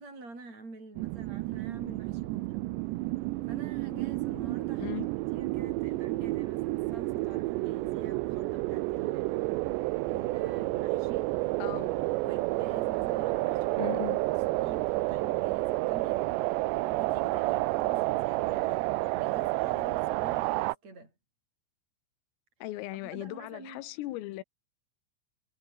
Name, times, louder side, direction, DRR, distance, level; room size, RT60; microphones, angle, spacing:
voice 1, 0.0-2.6 3.5-5.0 5.3-9.3 10.0-11.3 12.2-18.9 19.1-21.1 22.9-23.8, right 3 dB, 30° right, 9.1 m, -48 dB
sound 1, 1.0-20.8, right 20 dB, 90° right, 2.5 m, -30 dB
voice 2, 13.8-14.2 22.6-24.4, left 16 dB, 85° left, 3.8 m, -37 dB
omnidirectional pair, 5.9 m